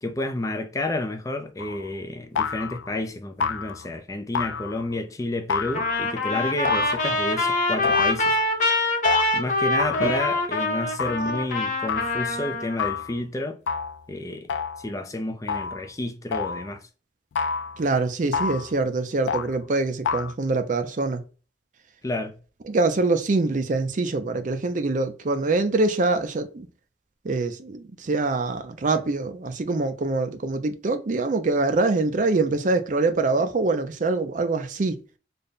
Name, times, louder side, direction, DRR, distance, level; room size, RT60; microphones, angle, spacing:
voice 1, 0.0-8.4 9.3-13.6 14.1-16.9 22.0-22.4, left 2 dB, 20° left, 0.4 m, -30 dB
sound 1, 1.6-1.9 2.4-2.9 3.4-3.9 4.3-4.9 5.5-6.1 6.6-7.4 7.8-8.4 9.0-9.3 9.8-10.3 11.0-11.3 11.9-12.2 12.8-13.2 13.7-14.0 14.5-14.9 15.5-15.9 16.3-16.7 17.4-17.8 18.3-18.7 19.3-19.6 20.0-20.3, left 6 dB, 85° left, 0.4 m, -29 dB
Trumpet, 5.7-12.8, left 2 dB, 45° left, 0.8 m, -24 dB
voice 2, 17.8-21.2 22.7-26.7 27.2-35.0, right 3 dB, 45° right, 0.5 m, -24 dB
3.4 x 2.2 x 3.8 m
head